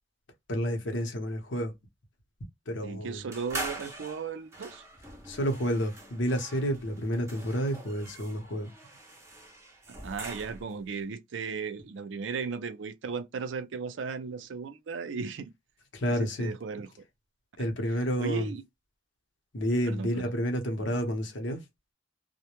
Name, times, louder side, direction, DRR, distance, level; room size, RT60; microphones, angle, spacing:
voice 1, 0.5-1.7 2.7-3.3 5.2-8.7 15.9-16.5 17.6-18.5 19.5-21.6, equal, 80° left, 0.8 m, -30 dB
voice 2, 2.8-4.8 9.9-15.5 16.1-16.9 18.2-18.6 19.9-20.2, right 5 dB, 80° right, 0.4 m, -36 dB
sound 1, 3.3-10.8, right 2 dB, 15° right, 0.6 m, -43 dB
2.1 x 2.1 x 2.9 m
head